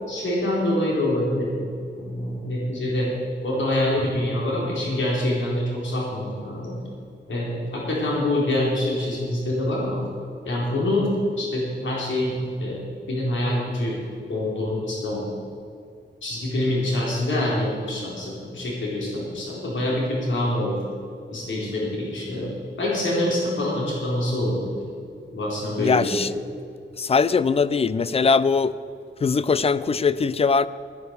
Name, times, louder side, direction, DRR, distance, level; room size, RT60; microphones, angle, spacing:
voice 1, 0.1-1.6 2.0-3.1 3.4-6.7 7.3-10.1 10.5-11.1 11.4-12.8 13.1-14.0 14.3-15.3 16.2-20.8 21.3-22.5 22.8-24.8 25.3-26.3, left 1 dB, 75° left, -5 dB, 4.2 m, -25 dB
voice 2, 25.8-26.3 27.0-28.8 29.2-30.7, left 5 dB, 30° left, 17 dB, 0.4 m, -21 dB
13.0 x 9.8 x 6.8 m, 2.3 s
wide cardioid pair, 170°, 20 cm